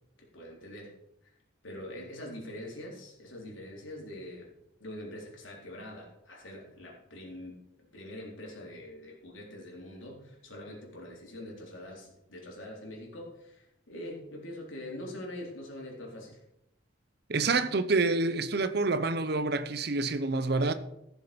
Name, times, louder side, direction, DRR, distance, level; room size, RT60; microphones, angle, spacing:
voice 1, 0.3-0.9 1.6-4.5 4.8-7.6 7.9-16.4, left 1 dB, 85° left, 3.8 m, -44 dB
voice 2, 17.3-20.7, right 3 dB, 55° right, 0.8 m, -27 dB
15.0 x 7.1 x 5.2 m
head